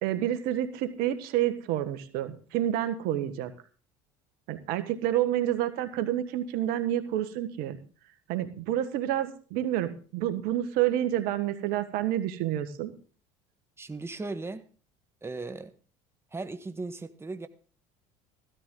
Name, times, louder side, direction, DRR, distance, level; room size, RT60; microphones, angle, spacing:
voice 1, 0.0-3.5 4.5-7.8 8.3-12.9, right 12 dB, 70° right, 11 dB, 1.6 m, -29 dB
voice 2, 13.8-14.6 15.2-15.7 16.3-17.5, right 3 dB, 15° right, 9 dB, 1.4 m, -37 dB
15.0 x 13.0 x 3.9 m, 0.38 s
hypercardioid pair, 80°, 16 cm